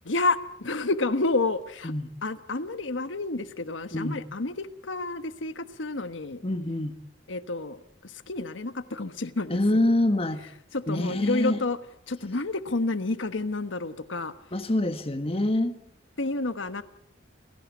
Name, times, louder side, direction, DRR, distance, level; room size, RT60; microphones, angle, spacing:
voice 1, 0.0-1.9 2.2-6.4 7.3-9.6 10.7-11.8 12.1-14.3 16.2-16.8, left 2 dB, 90° left, 1.2 m, -29 dB
voice 2, 6.4-6.9 9.5-10.5 10.9-11.6 14.5-15.7, left 1 dB, 30° left, 1.5 m, -25 dB
28.5 x 18.0 x 8.3 m
head